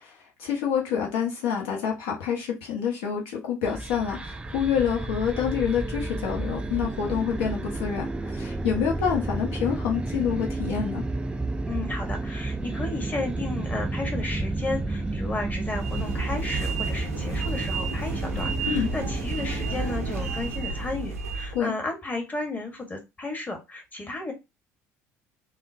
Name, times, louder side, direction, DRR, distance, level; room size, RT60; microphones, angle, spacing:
voice 1, 0.4-11.0 18.7-18.9 21.5-21.7, left 7 dB, 70° left, 0.8 m, -27 dB
sound 1, 3.6-21.1, right 2 dB, 15° right, 0.3 m, -31 dB
voice 2, 11.7-24.3, left 2 dB, 20° left, 1.2 m, -33 dB
sound 2, 15.7-21.6, right 4 dB, 90° right, 0.5 m, -32 dB
3.5 x 2.1 x 2.6 m
figure-of-eight pair, 60°, 8 cm